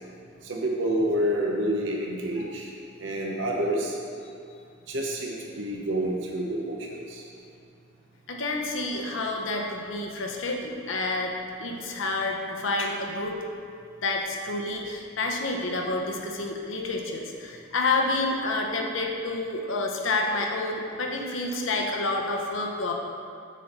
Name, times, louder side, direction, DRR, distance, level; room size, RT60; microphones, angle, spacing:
voice 1, 0.4-2.7 3.0-4.0 4.9-7.2, right 1 dB, 70° right, -2 dB, 0.9 m, -28 dB
voice 2, 8.3-11.3 11.6-13.4 14.0-22.9, left 2 dB, 80° left, 1 dB, 0.9 m, -29 dB
7.5 x 4.3 x 6.7 m, 2.4 s
head